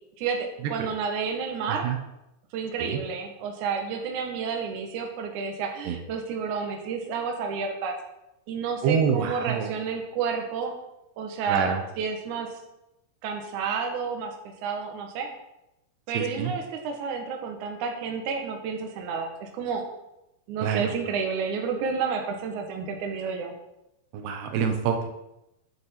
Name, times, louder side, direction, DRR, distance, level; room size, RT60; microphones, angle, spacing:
voice 1, 0.2-1.9 2.5-8.0 8.5-10.8 11.2-12.5 13.2-15.3 16.1-19.8 20.5-23.5, right 5 dB, 65° right, 2 dB, 2.2 m, -30 dB
voice 2, 8.8-9.7 11.5-11.8 16.1-16.5 20.6-20.9 24.1-25.1, right 7 dB, 85° right, 6 dB, 3.1 m, -26 dB
10.5 x 6.8 x 4.3 m, 0.89 s
omnidirectional pair, 4.7 m